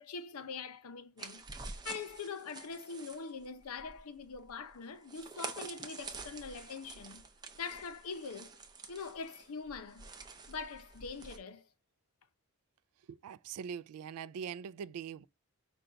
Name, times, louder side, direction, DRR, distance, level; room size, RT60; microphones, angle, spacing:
voice 1, 0.0-1.4 1.8-7.2 7.6-8.6 8.9-10.1 10.5-11.7, left 5 dB, 80° left, 0.6 m, -43 dB
sound 1, 1.2-11.4, right 4 dB, 20° right, 0.5 m, -48 dB
voice 2, 13.1-15.3, right 7 dB, 85° right, 0.3 m, -42 dB
5.3 x 2.3 x 3.8 m
head